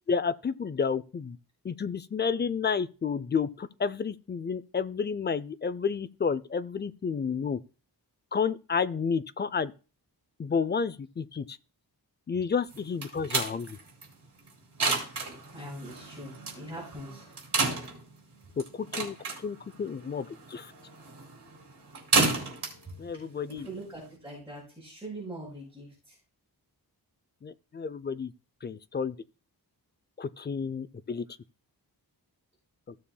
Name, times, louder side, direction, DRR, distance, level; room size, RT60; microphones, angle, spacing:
voice 1, 0.1-1.4 1.6-7.6 8.3-9.7 10.4-11.6 12.3-13.8 18.6-19.2 19.4-20.7 23.0-23.7 27.4-28.3 28.6-29.2 30.2-31.2, left 6 dB, 25° left, 0.4 m, -31 dB
sound 1, 12.7-24.1, right 3 dB, 70° right, 3.6 m, -32 dB
voice 2, 15.5-17.3 22.9-23.0 23.5-26.2, right 1 dB, 5° right, 5.3 m, -42 dB
15.5 x 7.0 x 2.2 m
wide cardioid pair, 120°, 40 cm